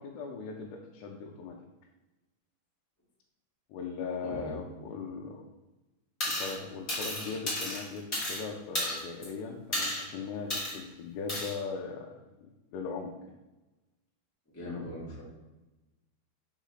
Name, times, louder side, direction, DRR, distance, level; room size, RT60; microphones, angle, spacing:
voice 1, 0.0-1.6 3.7-5.5 6.2-12.1 12.4-13.1 14.7-14.9, left 5 dB, 85° left, 0 dB, 2.8 m, -39 dB
sound 1, 6.2-6.5 6.9-8.4 8.7-9.2 9.7-10.0 10.5-10.7 11.3-11.5, left 1 dB, 40° left, 0.9 m, -32 dB
voice 2, 14.5-15.2, equal, 10° left, -7 dB, 0.7 m, -40 dB
6.1 x 4.1 x 5.7 m, 1.1 s
omnidirectional pair, 4.8 m